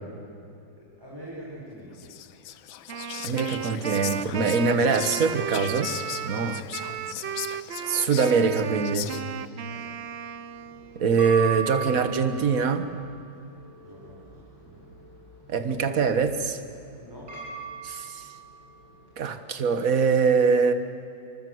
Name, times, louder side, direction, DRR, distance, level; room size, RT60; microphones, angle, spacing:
voice 1, 0.8-2.1 6.3-6.6 7.0-7.2 9.7-10.0 13.8-14.9 17.0-17.3, equal, 10° right, -5 dB, 4.6 m, -45 dB
Whispering, 1.9-9.5, left 11 dB, 90° left, 1.6 m, -38 dB
Wind instrument woodwind instrument, 2.9-11.0, right 9 dB, 90° right, 0.5 m, -34 dB
voice 2, 3.2-5.9 6.2-6.6 7.9-9.1 11.0-12.9 15.5-16.6 17.8-18.3 19.2-20.7, right 5 dB, 50° right, 9 dB, 1.7 m, -23 dB
sound 1, 10.6-19.1, right 6 dB, 65° right, 8.1 m, -39 dB
26.5 x 24.0 x 8.0 m, 2.5 s
omnidirectional pair, 2.1 m